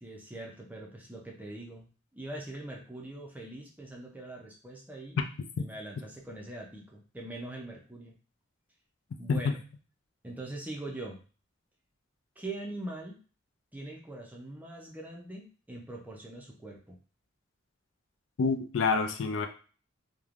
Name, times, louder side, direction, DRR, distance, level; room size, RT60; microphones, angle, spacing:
voice 1, 0.0-5.2 5.6-8.1 9.2-9.6 10.2-11.2 12.4-13.2 13.7-17.0, right 2 dB, 10° right, -1 dB, 0.4 m, -42 dB
voice 2, 18.4-19.5, left 4 dB, 65° left, 5 dB, 0.4 m, -27 dB
3.1 x 2.1 x 2.4 m, 0.37 s
head